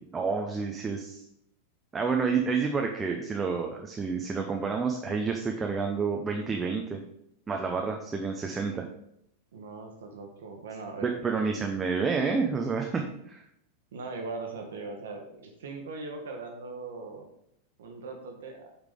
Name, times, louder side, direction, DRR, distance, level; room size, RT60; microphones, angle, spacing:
voice 1, 0.1-1.2 1.9-7.0 7.5-8.8 11.0-13.4, right 5 dB, 15° right, 2 dB, 0.7 m, -29 dB
voice 2, 9.5-11.5 13.9-17.3 17.8-18.7, right 3 dB, 60° right, 3 dB, 1.3 m, -40 dB
8.2 x 5.0 x 3.7 m, 0.76 s
figure-of-eight pair, 90°, 0 cm